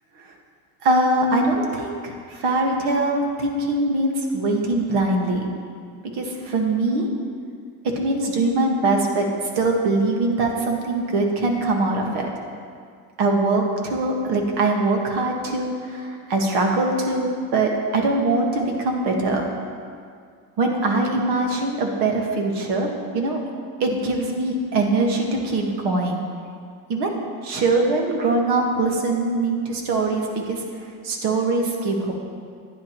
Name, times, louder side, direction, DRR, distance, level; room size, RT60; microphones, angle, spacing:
voice 1, 0.8-5.5 6.1-7.1 7.8-9.3 9.5-12.3 13.2-19.4 20.6-22.9 23.1-23.4 23.8-26.2 26.9-27.2 27.4-32.1, right 2 dB, 65° right, 1 dB, 1.6 m, -22 dB
12.0 x 9.7 x 3.0 m, 2.2 s
cardioid pair, 130°, 44 cm